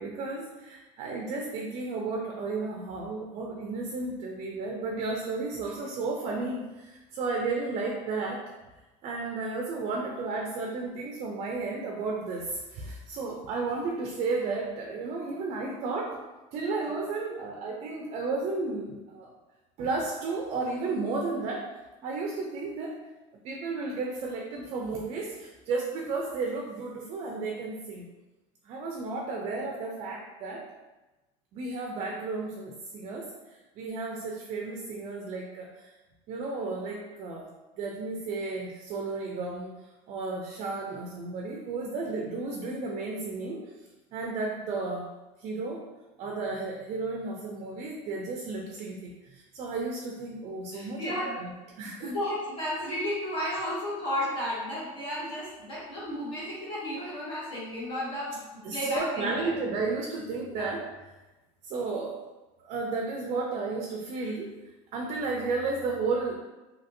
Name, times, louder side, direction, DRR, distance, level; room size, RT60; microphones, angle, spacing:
voice 1, 0.0-8.4 9.0-16.1 16.5-19.3 19.8-21.7 22.0-23.0 23.4-28.0 28.6-30.6 31.5-35.9 36.3-37.5 37.8-43.7 44.1-45.1 45.4-45.8 46.2-52.1 58.6-60.8 61.6-62.2 62.6-64.5 64.9-66.4, right 3 dB, 45° right, 0 dB, 0.4 m, -33 dB
voice 2, 50.7-51.3 52.0-59.5 60.4-60.7, equal, 35° left, -8 dB, 1.0 m, -33 dB
2.8 x 2.5 x 2.5 m, 1.1 s
cardioid pair, 135°, 15 cm